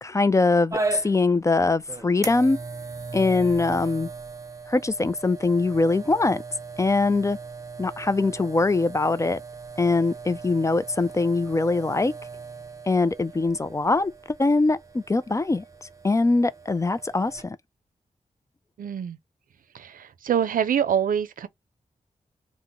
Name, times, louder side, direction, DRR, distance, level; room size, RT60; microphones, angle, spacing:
voice 1, 0.0-2.6 3.1-4.1 4.7-6.4 6.8-7.4 7.8-9.4 9.8-12.1 12.9-14.1 14.4-15.6 16.0-17.6, left 3 dB, 20° left, 0.3 m, -22 dB
sound 1, 0.7-17.4, right 3 dB, 25° right, 0.7 m, -38 dB
voice 2, 18.8-19.2 19.7-21.5, right 8 dB, 85° right, 0.5 m, -25 dB
2.9 x 2.1 x 3.6 m
cardioid pair, 70°, 14 cm